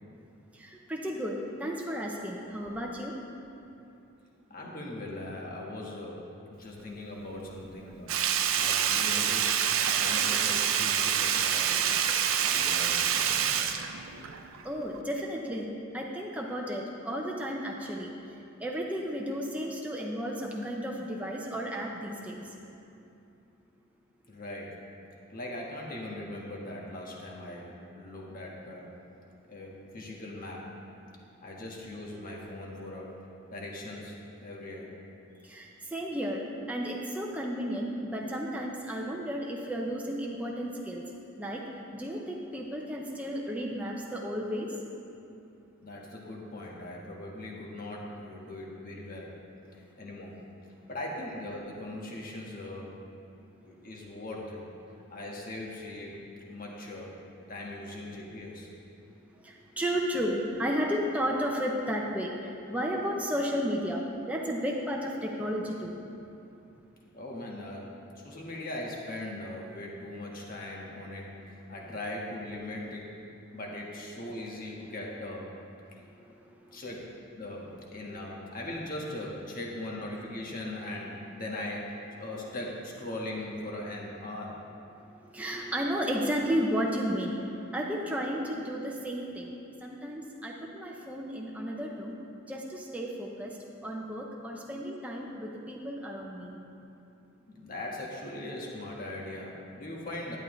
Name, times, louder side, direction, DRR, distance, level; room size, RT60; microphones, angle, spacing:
voice 1, 0.6-3.1 14.6-18.1 18.6-22.4 35.5-41.0 41.4-41.6 41.9-44.7 59.5-62.3 62.7-66.0 85.3-87.3 87.7-89.5 89.8-92.1 92.5-93.5 93.8-96.6, equal, 5° right, -1 dB, 0.6 m, -33 dB
voice 2, 4.5-6.2 6.5-8.1 8.6-9.6 10.0-11.9 12.4-13.4 24.3-24.8 25.3-28.9 29.5-30.6 31.4-33.1 33.5-34.9 45.8-49.3 50.0-50.3 50.9-52.9 53.6-54.6 55.1-56.2 56.5-57.1 57.5-58.7 67.1-67.9 68.2-71.3 71.7-73.1 73.5-75.5 76.7-77.1 77.3-84.6 97.5-100.4, left 1 dB, 45° left, -2 dB, 1.4 m, -40 dB
Sink (filling or washing), 8.1-14.6 14.9-15.0, right 8 dB, 75° right, 0.5 m, -27 dB
11.0 x 9.1 x 3.2 m, 2.7 s
head